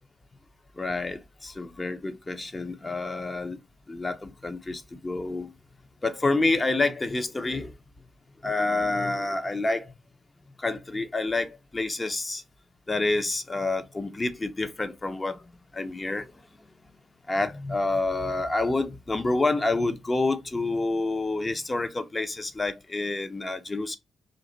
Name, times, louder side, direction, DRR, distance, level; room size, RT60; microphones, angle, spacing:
voice 1, 0.8-3.6 3.9-5.5 6.0-7.7 8.4-9.9 10.6-12.4 12.9-16.3 17.3-24.0, left 2 dB, 30° left, 0.8 m, -28 dB
3.9 x 2.8 x 3.9 m
hypercardioid pair, 50°, 0 cm